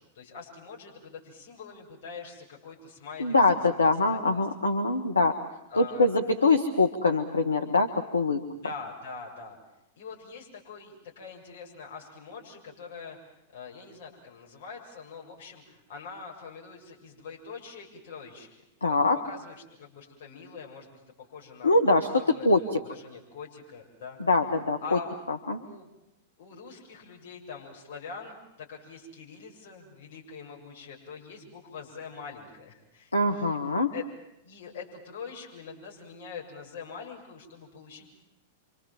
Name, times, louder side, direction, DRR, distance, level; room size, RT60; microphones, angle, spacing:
voice 1, 0.0-3.4 4.0-4.7 5.7-6.1 8.6-9.6 10.0-13.2 13.5-21.7 22.0-24.2 24.8-25.1 25.6-25.9 26.4-33.6 33.9-34.0 34.4-38.1, left 5 dB, 55° left, -2 dB, 7.2 m, -44 dB
voice 2, 3.2-5.4 5.7-8.4 18.8-19.2 21.6-22.8 24.3-25.0 25.3-25.6 33.1-33.9, left 2 dB, 80° left, 4 dB, 1.8 m, -23 dB
28.5 x 26.5 x 7.6 m, 0.85 s
figure-of-eight pair, 95°, 0 cm